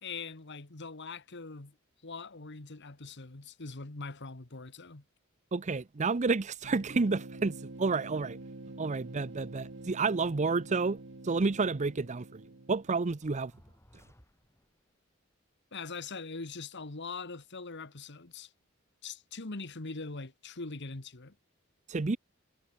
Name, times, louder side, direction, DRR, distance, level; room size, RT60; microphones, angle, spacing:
voice 1, 0.0-1.7 2.0-5.0 15.7-18.5 19.0-21.3, left 4 dB, 55° left, 1.6 m, -42 dB
voice 2, 5.5-8.4 8.8-13.5 21.9-22.2, right 4 dB, 35° right, 0.6 m, -30 dB
sound 1, 6.6-13.3, right 2 dB, 60° right, 1.6 m, -47 dB
sound 2, 13.2-14.9, equal, 15° left, 3.5 m, -61 dB
head